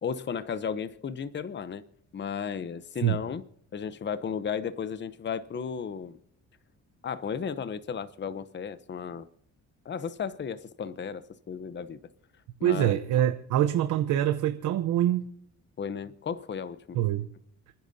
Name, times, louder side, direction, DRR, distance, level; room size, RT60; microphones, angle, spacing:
voice 1, 0.0-1.8 2.1-3.4 3.7-6.2 7.0-9.3 9.8-12.0 12.6-13.0 15.8-17.0, left 7 dB, 35° left, 0.9 m, -34 dB
voice 2, 12.6-15.3 16.9-17.3, right 12 dB, 85° right, 0.9 m, -25 dB
29.5 x 10.5 x 2.8 m
cardioid pair, 90°, 30 cm